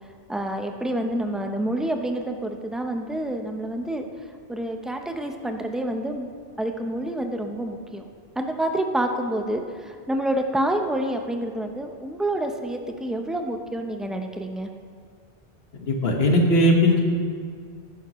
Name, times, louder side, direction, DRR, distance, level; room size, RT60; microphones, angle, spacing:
voice 1, 0.3-4.0 4.5-6.3 6.6-8.0 8.4-14.7, right 1 dB, ahead, 4 dB, 0.4 m, -28 dB
voice 2, 15.9-17.0, left 1 dB, 60° left, 1 dB, 1.6 m, -18 dB
14.5 x 11.5 x 3.1 m, 2.1 s
omnidirectional pair, 1.1 m